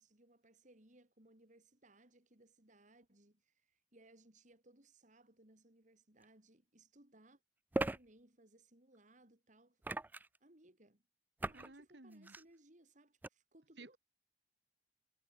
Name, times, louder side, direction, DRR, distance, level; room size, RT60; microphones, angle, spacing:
voice 1, 0.0-7.4 7.8-9.8 10.4-11.0 11.4-14.0, right 1 dB, 45° right, 4.0 m, -65 dB
sound 1, 6.2-6.3 7.7-8.0 9.8-10.4 11.4-11.7 12.1-12.4 13.2-13.3, right 2 dB, 10° right, 0.3 m, -38 dB
voice 2, 11.5-12.4 13.8-14.0, right 2 dB, 80° right, 2.3 m, -56 dB
head